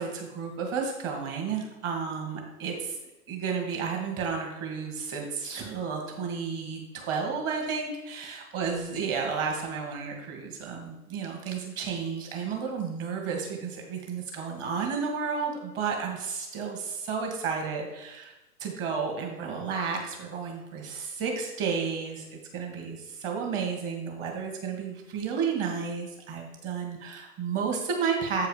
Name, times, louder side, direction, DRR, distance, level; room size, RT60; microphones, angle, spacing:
voice 1, 0.0-3.0 3.3-18.3 18.6-22.3 22.5-28.5, right 5 dB, 25° right, 1 dB, 1.7 m, -32 dB
7.8 x 4.8 x 4.9 m, 0.99 s
figure-of-eight pair, 115°, 48 cm